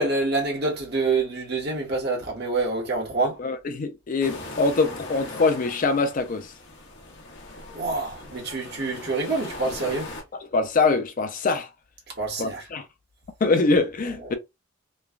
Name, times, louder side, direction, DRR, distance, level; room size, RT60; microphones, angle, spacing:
voice 1, 0.0-3.4 7.7-10.2 12.2-12.7, right 3 dB, 50° right, 1.3 m, -26 dB
voice 2, 3.4-6.5 10.5-11.7 12.4-12.8 13.4-14.4, left 3 dB, 40° left, 0.4 m, -23 dB
sound 1, 4.2-10.2, left 2 dB, 60° left, 0.9 m, -40 dB
3.1 x 2.2 x 2.3 m
head